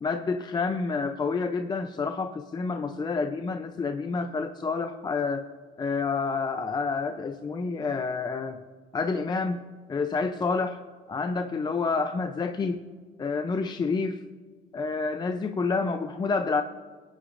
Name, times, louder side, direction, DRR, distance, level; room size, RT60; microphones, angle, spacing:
voice 1, 0.0-5.5 5.8-8.6 8.9-9.6 9.9-10.8 11.1-12.8 13.2-14.2 14.7-16.6, left 4 dB, 25° left, 8 dB, 0.5 m, -28 dB
22.0 x 9.9 x 2.5 m, 1.5 s
cardioid pair, 110°, 17 cm